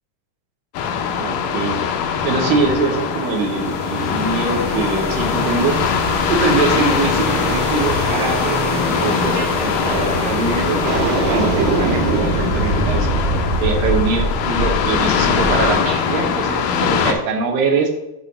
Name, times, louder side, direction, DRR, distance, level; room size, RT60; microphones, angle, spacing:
sound 1, 0.7-17.1, left 7 dB, 75° left, 2.2 m, -22 dB
voice 1, 1.2-1.8 2.2-5.7 6.3-10.8 11.2-13.1 13.6-17.9, right 4 dB, 80° right, 3 dB, 2.7 m, -23 dB
sound 2, 2.9-12.7, equal, 65° right, 1.0 m, -28 dB
sound 3, 9.4-9.5 9.8-16.0, right 2 dB, 50° right, 1.5 m, -22 dB
8.8 x 3.1 x 5.4 m, 0.94 s
omnidirectional pair, 4.0 m